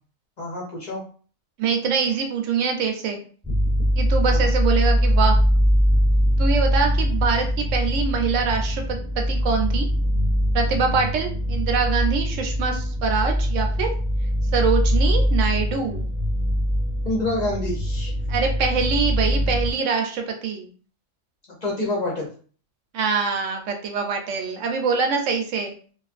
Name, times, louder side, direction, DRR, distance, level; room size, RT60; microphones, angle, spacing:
voice 1, 0.4-1.0 4.3-4.5 17.0-18.1 21.6-22.3, left 2 dB, 50° left, -3 dB, 0.6 m, -27 dB
voice 2, 1.6-3.2 4.0-5.4 6.4-9.9 10.5-13.9 14.5-16.1 18.3-20.7 22.9-25.7, right 5 dB, 85° right, 3 dB, 0.9 m, -24 dB
sound 1, 3.4-19.7, equal, ahead, 0.6 m, -22 dB
2.4 x 2.4 x 2.4 m, 0.42 s
omnidirectional pair, 1.3 m